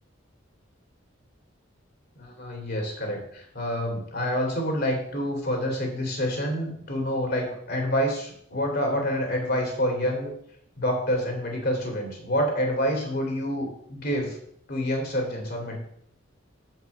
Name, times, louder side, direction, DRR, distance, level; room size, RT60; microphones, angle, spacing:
voice 1, 2.2-10.3 10.8-14.4 14.7-15.8, equal, 55° left, 2 dB, 2.8 m, -27 dB
7.7 x 6.0 x 6.5 m, 0.69 s
head